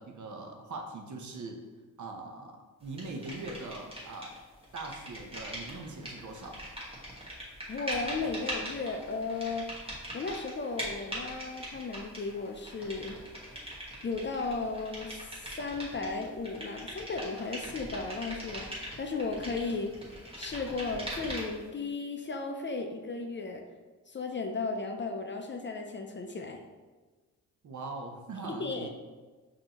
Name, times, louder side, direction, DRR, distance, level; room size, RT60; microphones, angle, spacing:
voice 1, 0.0-1.6 2.0-4.3 4.7-6.6 27.6-28.9, right 3 dB, 55° right, 3 dB, 0.8 m, -41 dB
sound 1, 3.0-4.4 4.6-21.7, equal, 15° right, 1.4 m, -41 dB
voice 2, 7.7-9.7 10.1-13.2 14.0-19.9 20.4-23.6 24.1-26.6 28.4-28.9, left 3 dB, 30° left, 4 dB, 0.4 m, -35 dB
5.3 x 2.8 x 2.9 m, 1.3 s
cardioid pair, 70°, 37 cm